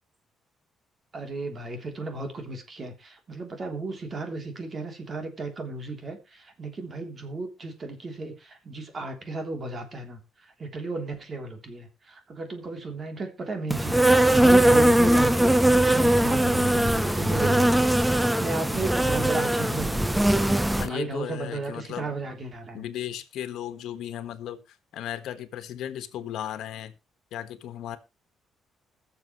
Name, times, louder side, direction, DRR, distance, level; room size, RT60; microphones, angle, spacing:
voice 1, 1.1-10.2 10.6-15.6 15.9-20.2 20.8-22.8, right 3 dB, 40° right, 3.2 m, -34 dB
Insect, 13.7-20.9, right 1 dB, 5° right, 0.7 m, -20 dB
voice 2, 20.8-22.1 22.7-26.9 27.3-28.0, left 11 dB, 80° left, 1.4 m, -36 dB
21.0 x 7.0 x 3.1 m
cardioid pair, 90°, 0 cm